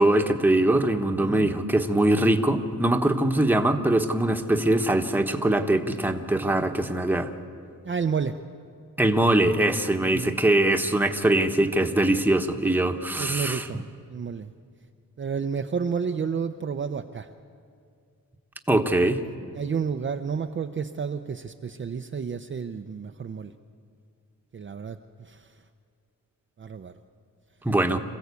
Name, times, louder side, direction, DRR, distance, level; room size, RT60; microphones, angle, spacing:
voice 1, 0.0-7.3 9.0-13.7 18.7-19.2 27.6-28.0, right 1 dB, 5° right, 5 dB, 1.2 m, -22 dB
voice 2, 7.8-8.4 10.0-10.4 13.2-14.5 15.2-17.3 19.5-23.5 24.5-25.5 26.6-26.9, right 6 dB, 35° right, 5 dB, 0.6 m, -31 dB
26.5 x 15.5 x 8.3 m, 2.3 s
wide cardioid pair, 120°, 34 cm